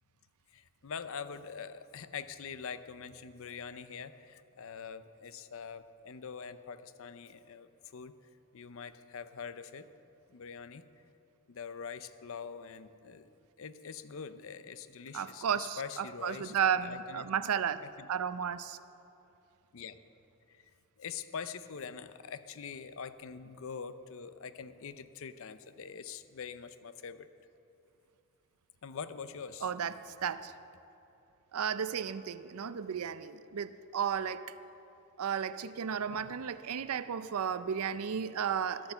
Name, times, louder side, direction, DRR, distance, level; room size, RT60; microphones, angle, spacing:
voice 1, 0.5-8.1 8.5-9.9 10.3-10.8 11.5-13.3 13.6-17.3 17.8-18.1 19.7-20.0 20.5-20.6 21.0-27.3 28.8-29.7 36.1-36.3, left 6 dB, 60° left, 13 dB, 0.5 m, -44 dB
voice 2, 15.1-17.8 18.1-18.8 29.6-30.5 31.5-34.5 35.2-38.9, right 8 dB, 75° right, 14 dB, 0.5 m, -33 dB
12.0 x 8.7 x 6.8 m, 2.9 s
head